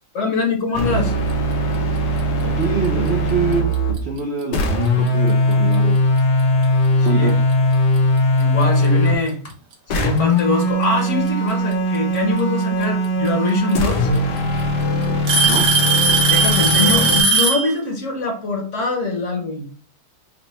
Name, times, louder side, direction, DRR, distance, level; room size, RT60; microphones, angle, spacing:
voice 1, 0.1-1.1 7.1-7.3 8.4-9.4 9.9-14.1 16.3-19.7, left 3 dB, 55° left, 2 dB, 1.1 m, -23 dB
sound 1, 0.7-4.0 4.5-9.2 9.9-17.2, left 1 dB, 80° left, 1.4 m, -19 dB
voice 2, 2.4-6.0 7.0-7.4 15.4-15.7, right 5 dB, 65° right, 2 dB, 0.6 m, -24 dB
Alarm / Tick-tock, 3.7-4.0 4.9-5.0 5.7-5.8 7.5-7.6 8.8-8.9 10.2-10.6 12.4-12.5 13.7-13.8 14.2-14.6 15.3-17.7, right 4 dB, 85° right, 1.5 m, -17 dB
4.1 x 2.1 x 4.2 m, 0.41 s
omnidirectional pair, 1.8 m